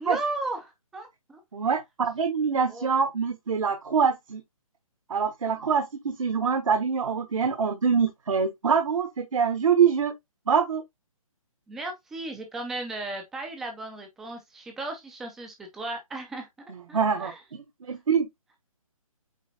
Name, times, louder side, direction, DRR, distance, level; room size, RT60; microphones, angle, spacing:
voice 1, 0.0-1.4 2.7-2.9 11.7-16.5 16.9-17.4, right 2 dB, ahead, 0.4 m, -35 dB
voice 2, 1.5-4.4 5.1-10.1 10.5-10.8 16.9-17.3 17.8-18.3, right 6 dB, 65° right, 1.4 m, -24 dB
8.3 x 3.0 x 4.1 m
hypercardioid pair, 170°, 18 cm